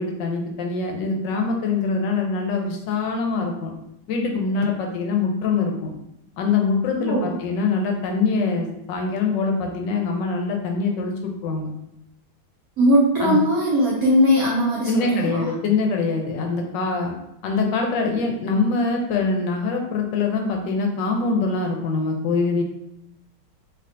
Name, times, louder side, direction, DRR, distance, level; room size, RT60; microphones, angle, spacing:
voice 1, 0.0-3.7 4.1-5.9 6.4-11.7 13.2-13.4 14.9-17.1 17.4-22.6, left 4 dB, 75° left, 2 dB, 1.2 m, -24 dB
voice 2, 7.0-7.4 12.8-15.5, equal, 85° right, -4 dB, 0.7 m, -19 dB
3.3 x 2.6 x 2.5 m, 0.81 s
omnidirectional pair, 2.1 m